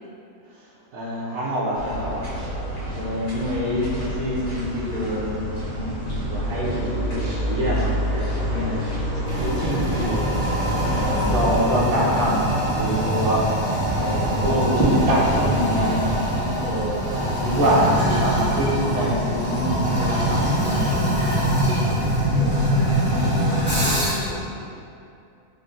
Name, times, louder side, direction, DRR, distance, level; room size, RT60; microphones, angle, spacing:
voice 1, 0.9-2.3 2.9-9.1 9.3-10.2 10.9-16.2 16.6-17.0 17.4-21.2 22.0-22.2, equal, 70° right, -5 dB, 1.1 m, -26 dB
sound 1, 1.8-11.6, equal, 90° left, 1.5 m, -28 dB
Toilet flush, 9.2-24.3, equal, 10° left, 0.7 m, -23 dB
voice 2, 22.3-24.7, left 1 dB, 75° left, -3 dB, 1.0 m, -34 dB
3.8 x 2.1 x 3.8 m, 2.6 s
omnidirectional pair, 1.6 m